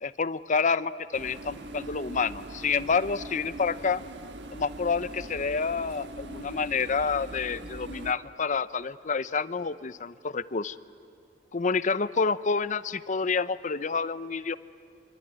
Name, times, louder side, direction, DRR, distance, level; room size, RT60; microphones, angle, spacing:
voice 1, 0.0-4.0 4.5-10.8 11.5-14.6, left 5 dB, 45° left, 15 dB, 0.6 m, -28 dB
sound 1, 1.1-8.1, right 1 dB, 80° right, 1.4 m, -42 dB
26.5 x 24.5 x 9.3 m, 2.3 s
head